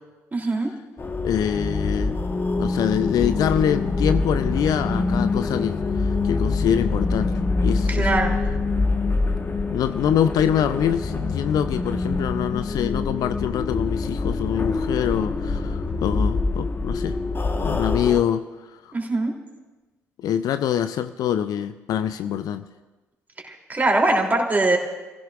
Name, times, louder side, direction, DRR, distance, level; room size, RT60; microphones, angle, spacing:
voice 1, 0.3-0.7 7.9-8.3 18.9-19.3 23.4-24.8, right 2 dB, 20° right, 1 dB, 3.1 m, -22 dB
sound 1, 1.0-18.2, left 3 dB, 30° left, 1.3 m, -25 dB
voice 2, 1.2-2.2 2.6-8.1 9.7-17.2 17.6-18.4 20.2-22.6, left 9 dB, 55° left, 12 dB, 0.5 m, -25 dB
30.0 x 16.0 x 2.5 m, 1.2 s
figure-of-eight pair, 50°, 8 cm